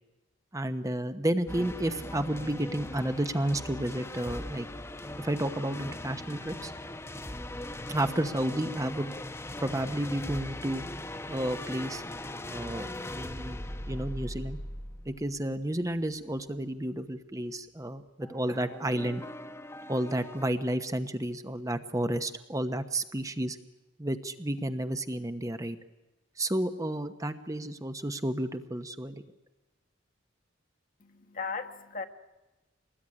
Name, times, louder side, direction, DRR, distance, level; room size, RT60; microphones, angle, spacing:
voice 1, 0.5-4.7 5.2-6.7 7.9-9.1 9.6-10.8 11.3-12.0 12.5-13.6 13.9-14.6 15.1-19.2 19.9-23.6 24.0-25.8 26.4-29.2, right 1 dB, 15° right, 9 dB, 1.0 m, -31 dB
sound 1, 1.5-16.4 18.2-20.5, left 1 dB, 15° left, 0.9 m, -40 dB
voice 2, 31.0-32.1, left 4 dB, 45° left, 5 dB, 1.7 m, -37 dB
25.0 x 20.0 x 9.9 m, 1.1 s
head